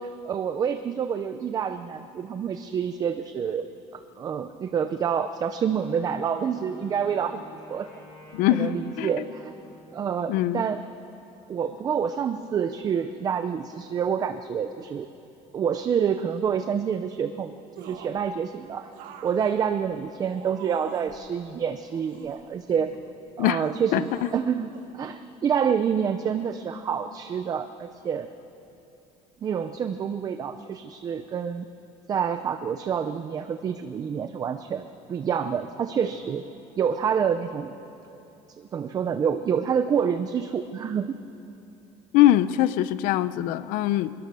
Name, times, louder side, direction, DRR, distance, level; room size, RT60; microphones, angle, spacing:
voice 1, 0.0-7.4 7.7-7.9 8.5-9.5 9.9-10.8 11.5-15.1 15.5-18.9 19.2-22.9 23.4-24.7 24.9-28.3 29.4-31.7 32.1-36.4 36.8-37.7 38.6-41.2, right 7 dB, 25° right, 9 dB, 0.6 m, -27 dB
Wind instrument woodwind instrument, 5.5-10.4, left 2 dB, 30° left, 6.9 m, -49 dB
voice 2, 8.3-9.1 10.3-10.7 23.4-23.7 23.9-24.3 42.1-44.1, left 13 dB, 75° left, 15 dB, 0.8 m, -22 dB
sound 1, 17.8-18.3 18.9-21.2 21.9-23.0 23.6-24.5 24.7-24.9, right 8 dB, 75° right, 1.9 m, -45 dB
23.5 x 22.0 x 6.9 m, 2.8 s
cardioid pair, 175°, 14 cm